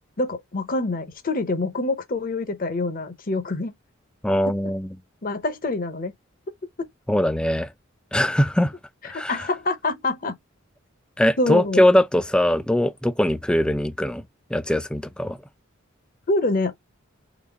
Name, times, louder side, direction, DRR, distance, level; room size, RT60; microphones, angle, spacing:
voice 1, 0.2-3.7 4.5-4.6 5.2-6.1 6.6-6.9 9.0-10.3 11.4-11.9 16.3-16.8, left 2 dB, 40° left, 0.8 m, -26 dB
voice 2, 4.2-4.9 7.1-7.7 8.1-8.7 9.0-9.5 11.2-14.2 14.5-15.4, left 1 dB, 5° left, 0.4 m, -21 dB
4.0 x 3.7 x 3.5 m
head